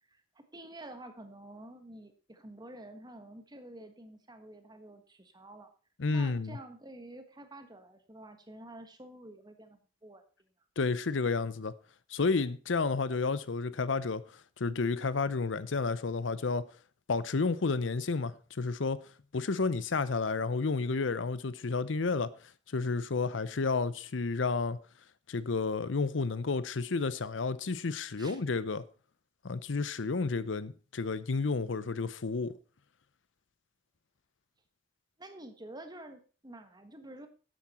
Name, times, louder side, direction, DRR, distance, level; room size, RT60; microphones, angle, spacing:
voice 1, 0.1-5.7 6.1-10.2 28.2-28.4 35.2-37.3, right 1 dB, 20° right, 1.4 m, -49 dB
voice 2, 6.0-6.6 10.8-11.7 12.1-14.2 14.6-16.6 17.1-19.0 19.3-22.3 22.7-24.8 25.3-28.8 29.4-32.6, left 4 dB, 80° left, 0.7 m, -31 dB
12.0 x 8.5 x 4.3 m
head